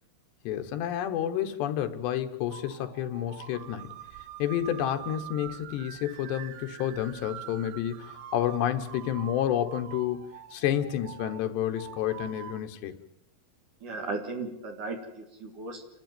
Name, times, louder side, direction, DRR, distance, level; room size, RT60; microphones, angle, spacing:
voice 1, 0.4-3.9 4.4-12.9, left 11 dB, 80° left, 3.4 m, -30 dB
sound 1, 2.5-12.6, right 11 dB, 70° right, 2.5 m, -45 dB
voice 2, 13.8-16.0, right 3 dB, 55° right, 3.0 m, -36 dB
29.0 x 12.5 x 9.2 m
omnidirectional pair, 4.9 m